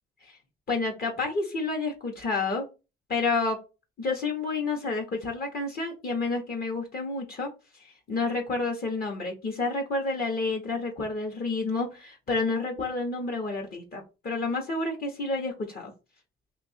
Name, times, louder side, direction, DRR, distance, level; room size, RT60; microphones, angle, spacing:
voice 1, 0.7-2.6 3.1-3.6 4.0-15.9, left 3 dB, 50° left, 1 dB, 1.0 m, -30 dB
2.7 x 2.5 x 4.1 m, 0.29 s
cardioid pair, 90°, 20 cm